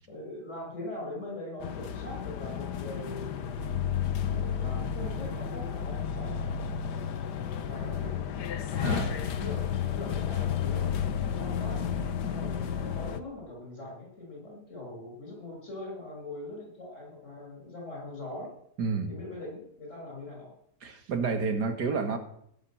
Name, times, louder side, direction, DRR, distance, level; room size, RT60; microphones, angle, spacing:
voice 1, 0.1-3.4 4.3-6.8 7.5-8.2 8.7-9.1 9.4-9.6 9.9-10.9 11.3-11.8 12.2-18.5 19.1-20.5, left 2 dB, 45° left, 0 dB, 7.4 m, -41 dB
sound 1, 1.6-13.2, left 8 dB, 80° left, 1.6 m, -32 dB
voice 2, 8.8-9.1 18.8-19.1 20.8-22.2, right 4 dB, 75° right, 7 dB, 2.4 m, -30 dB
16.5 x 10.0 x 7.7 m, 0.70 s
omnidirectional pair, 1.8 m